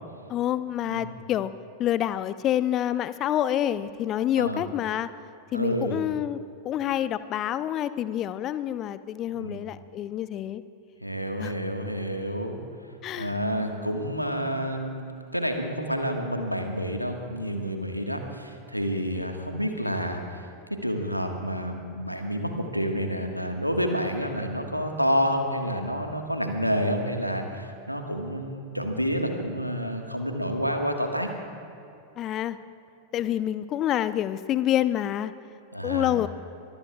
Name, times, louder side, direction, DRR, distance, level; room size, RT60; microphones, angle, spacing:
voice 1, 0.3-1.5 1.8-5.1 5.5-6.4 6.6-10.6 11.4-11.5 13.0-13.4 19.1-19.3 32.2-32.6 33.1-35.3 35.8-36.3, left 11 dB, 35° left, 15 dB, 0.6 m, -27 dB
voice 2, 0.8-1.2 4.4-4.6 5.5-6.0 9.3-9.6 11.0-12.6 13.1-15.0 15.3-31.3 35.7-36.1, equal, 90° left, 4 dB, 1.5 m, -29 dB
24.0 x 22.0 x 2.4 m, 2.8 s
figure-of-eight pair, 90°, 0 cm